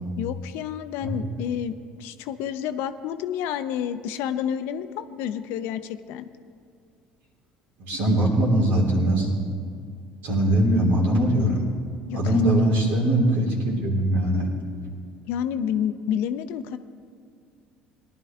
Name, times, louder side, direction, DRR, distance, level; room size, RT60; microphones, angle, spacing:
voice 1, 0.2-6.3 12.1-12.4 15.3-16.8, left 9 dB, 70° left, 11 dB, 0.6 m, -29 dB
voice 2, 7.8-9.3 10.2-11.6 12.1-14.5, right 1 dB, 70° right, -3 dB, 3.3 m, -21 dB
19.0 x 11.5 x 3.5 m, 2.3 s
hypercardioid pair, 70°, 4 cm